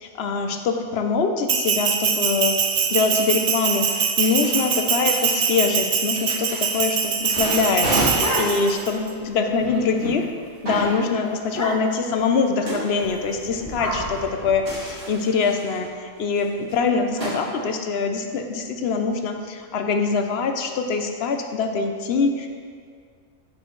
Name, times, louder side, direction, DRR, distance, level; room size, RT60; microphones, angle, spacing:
voice 1, 0.0-2.6 2.9-10.3 10.6-22.5, left 4 dB, 60° left, 5 dB, 0.7 m, -24 dB
Bell, 1.5-8.9, right 7 dB, 60° right, 0.8 m, -23 dB
sound 1, 2.9-6.8 7.2-10.1 10.7-11.0 12.7-12.8 14.6-15.9 16.4-16.5 16.7-16.8 17.2-17.4, right 1 dB, 45° right, 2.3 m, -30 dB
sound 2, 8.0-8.9 9.3-9.4 9.6-9.9 10.3-10.5 10.8-10.9 11.5-12.1 13.0-15.0, equal, 15° left, 0.7 m, -31 dB
9.8 x 6.2 x 3.1 m, 2.1 s
omnidirectional pair, 1.4 m